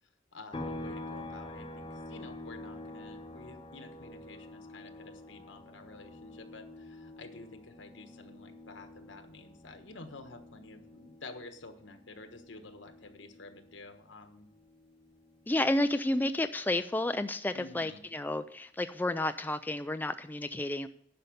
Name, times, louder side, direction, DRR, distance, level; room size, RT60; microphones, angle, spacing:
voice 1, 0.3-14.5 17.5-18.0, left 3 dB, 75° left, 7 dB, 1.3 m, -50 dB
sound 1, 0.5-14.1 14.4-16.6, left 2 dB, 25° left, 0.9 m, -47 dB
voice 2, 15.5-20.9, left 1 dB, 10° left, 10 dB, 0.3 m, -31 dB
11.0 x 5.5 x 7.9 m, 0.67 s
head